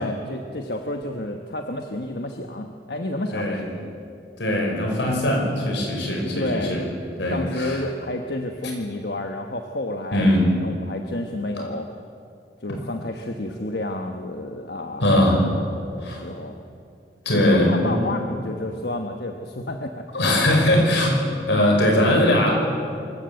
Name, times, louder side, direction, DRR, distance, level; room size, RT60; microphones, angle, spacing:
voice 1, 0.0-3.8 6.3-6.8 7.3-10.3 10.6-11.9 12.6-15.2 15.9-16.6 17.3-20.2, left 1 dB, 65° left, 4 dB, 1.2 m, -30 dB
voice 2, 3.3-3.7 4.4-6.8 7.2-7.8 10.1-10.5 15.0-15.4 16.0-16.2 17.3-18.0 20.1-21.1 21.5-22.6, left 1 dB, 85° left, 1 dB, 5.6 m, -20 dB
25.5 x 14.5 x 8.0 m, 2.4 s
head